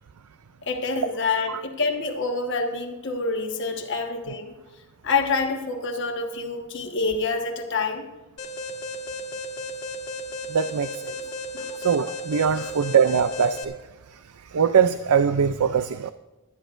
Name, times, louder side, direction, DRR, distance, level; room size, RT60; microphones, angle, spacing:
voice 1, 0.7-4.5 5.0-8.1 11.5-11.8 12.5-12.7, left 4 dB, 55° left, 3 dB, 1.4 m, -27 dB
Alarm, 8.4-13.6, left 1 dB, 80° left, 1.5 m, -34 dB
voice 2, 10.5-11.2 11.8-13.8 14.1-16.1, right 7 dB, 85° right, 12 dB, 0.5 m, -22 dB
20.0 x 12.0 x 2.6 m, 1.1 s
head